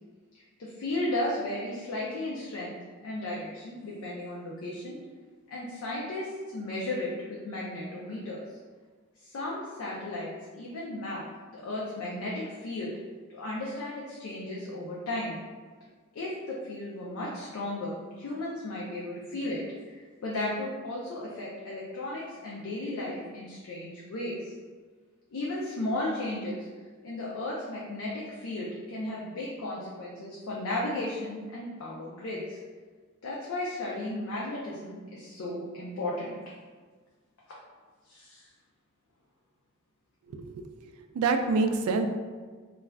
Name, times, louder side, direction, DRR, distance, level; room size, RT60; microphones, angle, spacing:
voice 1, 0.3-2.7 3.0-5.0 5.5-8.4 9.2-11.2 11.5-12.9 13.3-15.4 16.1-24.5 25.3-26.7 27.0-32.6 33.2-36.5 38.1-38.5, left 1 dB, 80° left, -5 dB, 0.5 m, -35 dB
voice 2, 40.3-40.7 41.1-42.1, right 4 dB, 90° right, 9 dB, 0.3 m, -26 dB
2.4 x 2.2 x 3.3 m, 1.5 s
head